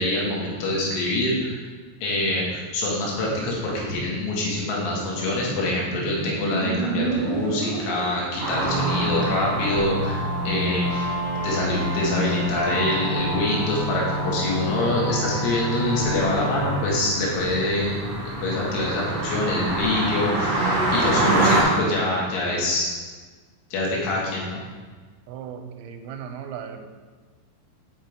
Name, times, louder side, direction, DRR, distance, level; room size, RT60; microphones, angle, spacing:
voice 1, 0.0-1.6 2.0-11.1 11.4-18.0 18.4-22.9 23.7-24.6, left 2 dB, 75° left, -4 dB, 4.0 m, -25 dB
Motorcycle, 5.1-8.6, right 4 dB, 70° right, 1.5 m, -30 dB
sound 1, 8.4-21.6, right 2 dB, 55° right, 1.6 m, -28 dB
sound 2, 8.6-18.0, equal, 45° left, 3.0 m, -28 dB
voice 2, 25.3-26.9, right 8 dB, 90° right, 7 dB, 3.3 m, -37 dB
9.3 x 5.2 x 4.5 m, 1.4 s
omnidirectional pair, 5.9 m